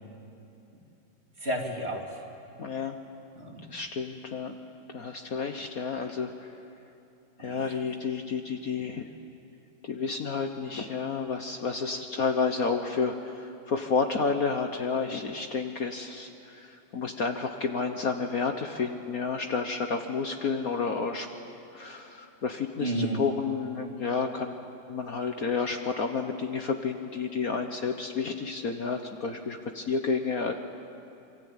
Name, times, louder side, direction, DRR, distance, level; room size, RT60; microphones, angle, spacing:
voice 1, 1.4-2.2 3.3-3.7 7.4-7.9 22.8-23.2, right 1 dB, 30° right, 0 dB, 3.2 m, -32 dB
voice 2, 2.6-2.9 3.7-4.5 4.9-6.3 7.4-9.0 9.9-13.1 13.7-16.3 16.9-21.3 21.7-22.9 23.2-24.5 24.9-30.5, left 5 dB, 50° left, 5 dB, 1.5 m, -30 dB
26.5 x 24.0 x 8.9 m, 2.9 s
omnidirectional pair, 2.1 m